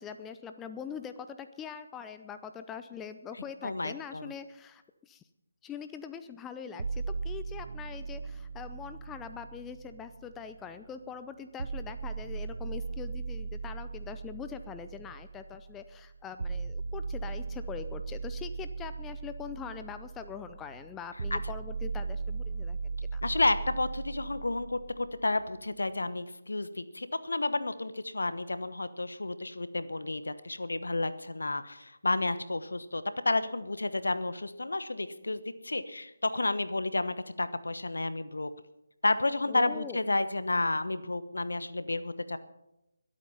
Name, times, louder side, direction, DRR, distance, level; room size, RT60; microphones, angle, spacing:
voice 1, 0.0-5.2 5.6-22.8 23.1-23.2 39.5-40.0, left 7 dB, 10° left, 9 dB, 0.5 m, -43 dB
voice 2, 3.6-4.3 21.3-21.4 23.2-38.5 39.0-42.4, left 2 dB, 70° left, 13 dB, 1.0 m, -31 dB
sound 1, 6.8-10.8 11.6-25.6, right 4 dB, 60° right, 0.7 m, -38 dB
21.5 x 8.6 x 5.6 m, 0.89 s
figure-of-eight pair, 150°, 0 cm